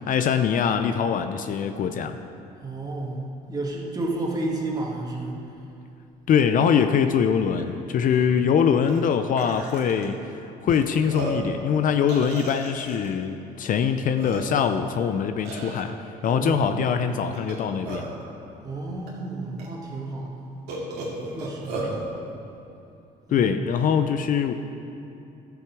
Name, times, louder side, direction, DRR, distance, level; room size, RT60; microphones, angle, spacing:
voice 1, 0.1-2.2 6.3-15.9 16.2-18.1 23.3-24.5, left 7 dB, 55° left, 8 dB, 0.5 m, -23 dB
voice 2, 2.6-3.2 3.5-5.4 16.2-16.8 18.6-20.5 21.2-21.9 23.3-23.5, right 2 dB, 20° right, -2 dB, 1.9 m, -31 dB
Burping eructation, 7.6-7.7 8.0-8.3 8.9-9.0 9.4-10.1 10.7-10.8 11.1-11.5 12.1-13.1 13.8-13.9 14.2-14.7 15.4-15.8 17.3-18.2 19.1-19.2 19.6-19.7 20.7-22.0, right 2 dB, 80° right, 2.4 m, -34 dB
13.5 x 7.2 x 4.7 m, 2.8 s
cardioid pair, 110°, 17 cm